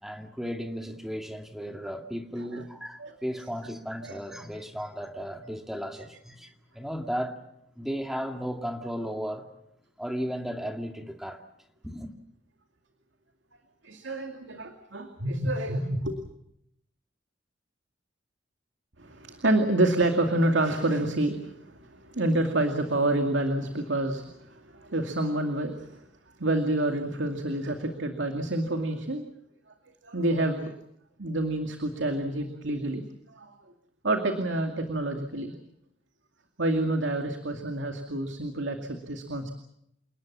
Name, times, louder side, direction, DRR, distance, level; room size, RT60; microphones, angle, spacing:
voice 1, 0.0-7.4 7.8-9.5 10.0-11.4 11.8-12.1, equal, ahead, 2.3 m, -35 dB
voice 2, 13.8-16.2 19.0-26.0 26.4-29.2 30.0-30.7 31.2-33.0 33.3-33.6 34.0-35.5 36.6-39.5, right 1 dB, 90° right, 2.3 m, -28 dB
29.5 x 19.0 x 7.4 m
head